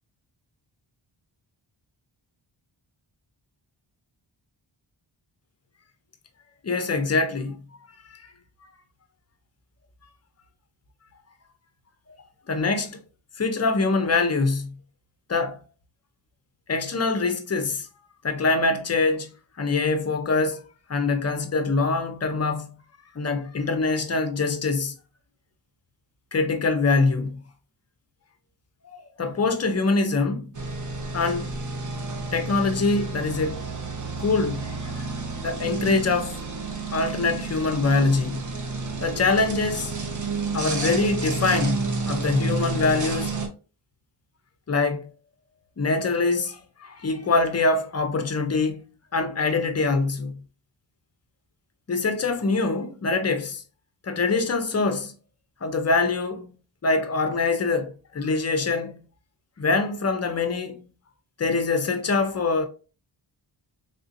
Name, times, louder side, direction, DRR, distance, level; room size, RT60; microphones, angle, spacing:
voice 1, 6.6-7.6 8.1-8.3 12.5-13.0 13.4-14.7 15.3-15.6 16.7-17.9 18.2-19.3 19.6-20.6 20.9-22.7 23.1-24.9 26.3-27.4 28.8-30.5 31.1-31.5 32.3-33.7 34.2-35.1 35.4-36.4 36.9-38.4 39.0-39.9 40.5-43.3 44.7-45.1 45.8-48.8 49.1-50.4 51.9-53.6 54.0-55.1 55.6-56.5 56.8-59.0 59.6-60.8 61.4-62.7, left 3 dB, 30° left, 0.6 m, -24 dB
sound 1, 30.5-43.5, right 3 dB, 40° right, 0.7 m, -30 dB
3.6 x 2.7 x 2.6 m
wide cardioid pair, 120°, 49 cm